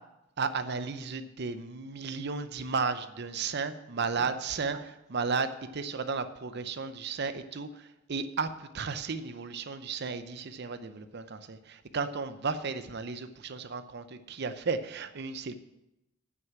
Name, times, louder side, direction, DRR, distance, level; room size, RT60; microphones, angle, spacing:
voice 1, 0.4-15.5, right 4 dB, 55° right, 11 dB, 0.7 m, -34 dB
9.4 x 6.1 x 7.4 m, 0.91 s
head